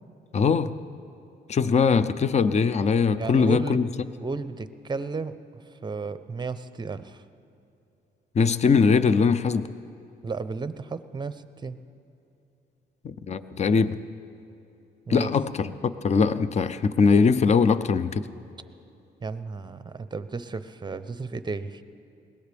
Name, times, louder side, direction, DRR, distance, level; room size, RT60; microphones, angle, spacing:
voice 1, 0.3-0.7 1.5-3.9 8.3-9.7 13.0-14.0 15.1-18.3, left 5 dB, 35° left, 0.6 m, -21 dB
voice 2, 3.2-3.8 4.2-7.2 10.2-11.8 15.1-15.3 19.2-21.8, right 4 dB, 20° right, 0.7 m, -33 dB
21.0 x 17.5 x 3.5 m
cardioid pair, 90°, 20 cm